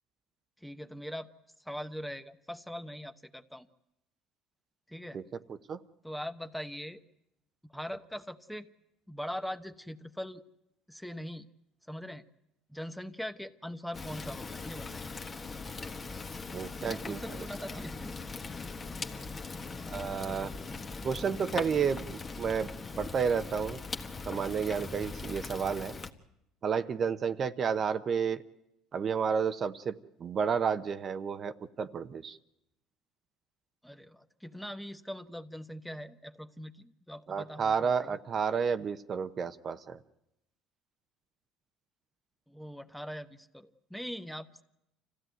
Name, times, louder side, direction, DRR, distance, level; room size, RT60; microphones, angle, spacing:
voice 1, 0.6-1.3 1.6-3.7 4.9-5.2 6.0-7.0 7.6-8.7 9.1-10.4 10.9-11.5 11.9-12.2 12.7-15.1 16.7-18.2 33.8-38.2 42.5-44.5, equal, ahead, 9 dB, 1.0 m, -41 dB
voice 2, 5.5-5.8 16.5-17.4 19.9-20.5 21.0-22.7 23.0-23.8 24.3-25.9 26.6-28.4 28.9-29.9 30.2-32.4 37.3-40.0, right 6 dB, 40° right, 10 dB, 0.9 m, -31 dB
Fire, 13.9-26.1, left 4 dB, 25° left, 1.5 m, -40 dB
26.0 x 15.5 x 9.2 m, 0.87 s
supercardioid pair, 95°, 0 cm